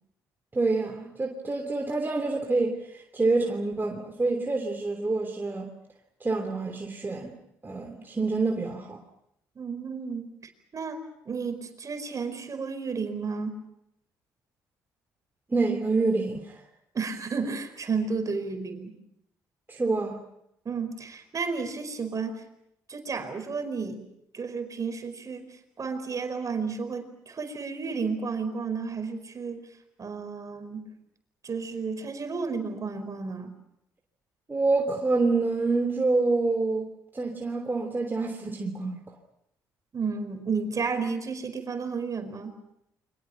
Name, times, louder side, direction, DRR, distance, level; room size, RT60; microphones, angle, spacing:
voice 1, 0.5-5.7 6.2-7.3 7.6-9.0 15.5-16.6 19.7-20.2 34.5-39.0, right 3 dB, 25° right, 2 dB, 3.1 m, -27 dB
voice 2, 9.5-10.3 10.7-13.6 16.9-19.0 20.6-22.4 22.9-24.0 24.3-29.7 30.0-30.8 31.4-33.6 39.9-42.5, right 5 dB, 40° right, 7 dB, 4.8 m, -32 dB
29.5 x 24.5 x 5.9 m, 0.77 s
hypercardioid pair, 55°, 8 cm